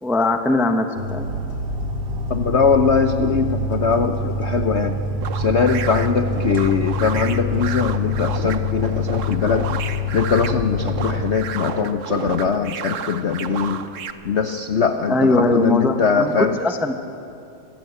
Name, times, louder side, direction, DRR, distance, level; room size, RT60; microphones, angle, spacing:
voice 1, 0.0-1.3 15.1-16.9, left 2 dB, ahead, 6 dB, 0.5 m, -20 dB
sound 1, 0.9-10.9, right 2 dB, 30° right, 2.1 m, -32 dB
sound 2, 1.2-11.2, left 3 dB, 90° right, 2.2 m, -26 dB
voice 2, 2.3-5.0 5.3-13.8 14.2-16.6, left 5 dB, 60° left, 7 dB, 0.7 m, -21 dB
sound 3, 5.2-14.1, right 7 dB, 55° right, 0.9 m, -31 dB
23.0 x 15.5 x 8.2 m, 2.6 s
omnidirectional pair, 2.2 m